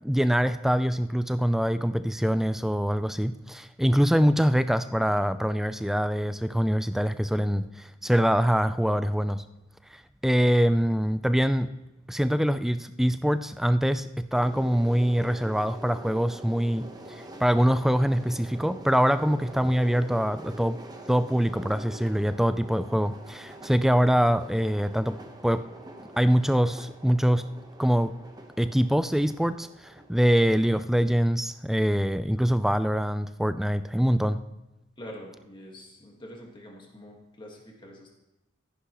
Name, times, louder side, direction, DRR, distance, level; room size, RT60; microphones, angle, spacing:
voice 1, 0.0-9.4 9.9-11.7 12.1-20.8 21.1-25.6 26.2-27.5 27.8-28.1 28.6-34.4, equal, ahead, 12 dB, 0.3 m, -24 dB
sound 1, 14.3-30.8, right 1 dB, 20° right, 0.9 m, -45 dB
voice 2, 35.0-38.1, equal, 25° left, -1 dB, 1.6 m, -45 dB
14.0 x 10.5 x 3.0 m, 0.97 s
head